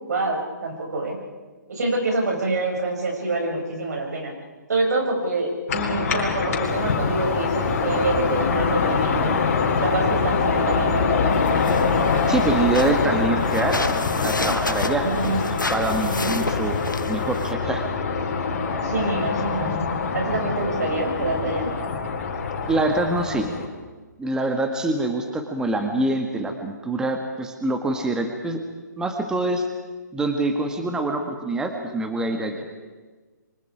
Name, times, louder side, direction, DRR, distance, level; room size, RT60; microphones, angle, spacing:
voice 1, 0.1-1.2 1.7-4.3 4.7-9.3 9.8-11.4 15.0-15.7 16.0-16.3 18.8-19.8 20.1-21.7, right 2 dB, 60° right, 1 dB, 6.9 m, -26 dB
sound 1, 5.7-23.7, left 5 dB, 45° left, 4.5 m, -24 dB
sound 2, 6.6-13.0, left 5 dB, 15° left, 5.7 m, -40 dB
sound 3, 11.3-17.5, left 2 dB, 85° left, 1.4 m, -31 dB
voice 2, 12.3-15.1 15.7-16.8 17.1-17.8 22.7-23.5 24.2-28.6 29.0-29.7 30.1-32.7, right 2 dB, 5° right, 5 dB, 1.7 m, -25 dB
28.5 x 24.5 x 5.0 m, 1.4 s
figure-of-eight pair, 135°, 10 cm